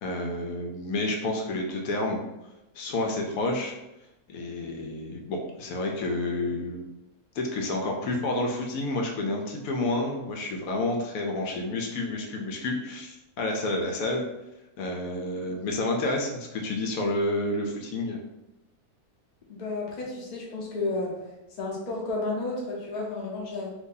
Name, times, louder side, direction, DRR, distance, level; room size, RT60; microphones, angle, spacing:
voice 1, 0.0-2.2 2.7-3.7 4.3-6.9 7.3-14.2 14.8-18.2, left 2 dB, 75° left, 1 dB, 1.0 m, -29 dB
voice 2, 19.5-21.3 21.5-23.7, left 2 dB, 40° left, -3 dB, 0.7 m, -32 dB
2.7 x 2.6 x 3.7 m, 0.96 s
omnidirectional pair, 1.6 m